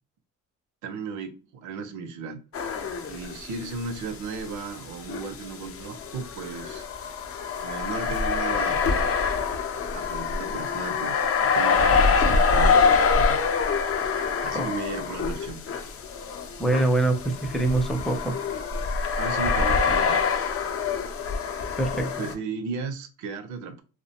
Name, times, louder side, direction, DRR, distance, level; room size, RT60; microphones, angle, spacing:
voice 1, 0.8-2.4 3.1-6.9 7.6-9.1 9.9-13.5 14.4-15.6 19.2-20.2 21.6-21.7 22.2-23.8, right 4 dB, 75° right, 0.5 m, -35 dB
sound 1, 2.5-3.7 4.0-4.1 5.1-22.3, left 5 dB, 50° left, 0.5 m, -25 dB
voice 2, 16.6-18.3 21.8-22.1, right 2 dB, ahead, 0.5 m, -24 dB
2.4 x 2.1 x 2.7 m
cardioid pair, 90°, 30 cm